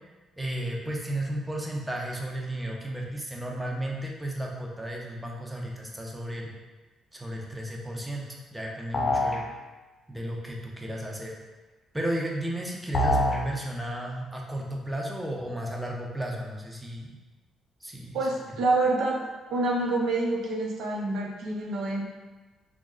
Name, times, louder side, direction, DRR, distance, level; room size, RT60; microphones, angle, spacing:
voice 1, 0.4-6.5 7.1-9.4 10.1-11.3 11.9-17.1 17.8-18.3, right 1 dB, 10° right, -1 dB, 0.6 m, -33 dB
sound 1, 8.9-9.4 12.9-13.4, left 1 dB, 45° left, 0.6 m, -24 dB
voice 2, 18.1-19.2 19.5-22.0, right 2 dB, 75° right, -1 dB, 0.7 m, -27 dB
5.9 x 2.0 x 2.4 m, 1.2 s
cardioid pair, 90°, 0 cm